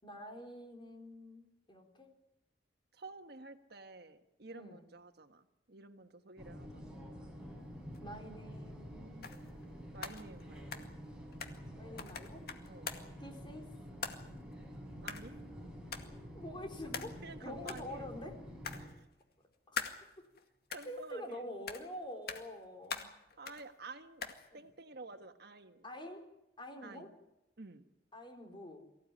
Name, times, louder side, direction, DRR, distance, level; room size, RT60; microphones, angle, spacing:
voice 1, 0.0-2.1 4.5-4.8 8.0-9.4 11.8-12.5 13.2-13.7 16.3-18.4 19.7-19.8 20.2-20.3 20.9-23.0 24.5-24.6 25.8-26.2 26.6-27.1 28.1-28.9, left 1 dB, 30° left, 4 dB, 3.9 m, -47 dB
voice 2, 2.9-6.9 9.9-10.9 12.6-12.9 15.0-15.3 17.2-18.1 18.8-19.1 20.7-21.5 23.4-24.2 24.5-25.9 26.8-27.1 27.6-27.9, right 3 dB, 65° right, 7 dB, 1.5 m, -51 dB
sound 1, 6.4-18.9, equal, 5° right, 6.4 m, -49 dB
sound 2, 7.9-8.0 9.2-9.7 10.0-11.7 12.0-13.2 14.0-14.5 15.1-15.5 15.9-16.2 16.9-17.4 17.6-17.9 18.6-19.2 19.8-20.5 20.7-21.3 21.7-22.0 22.3-22.6 22.9-23.7 24.2-24.5, left 6 dB, 60° left, 2.1 m, -44 dB
24.0 x 16.0 x 9.8 m, 0.91 s
head